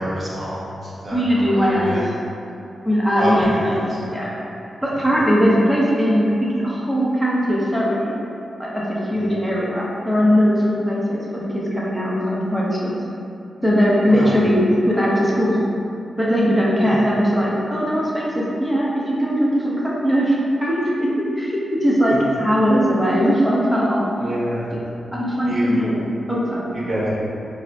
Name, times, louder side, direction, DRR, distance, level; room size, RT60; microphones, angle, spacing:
voice 1, 0.0-2.0 3.2-3.5 3.9-4.0 9.1-9.2 14.1-14.3 16.8-17.0 24.2-24.7 25.4-25.9 26.7-27.1, equal, 45° right, -8 dB, 1.0 m, -27 dB
voice 2, 1.1-2.1 2.8-3.8 4.1-4.4 4.8-8.1 8.6-13.0 13.6-15.6 16.2-24.0 25.1-26.0 26.3-26.6, equal, 5° right, -6 dB, 0.9 m, -19 dB
4.2 x 2.4 x 2.2 m, 2.7 s
supercardioid pair, 40°, 0 cm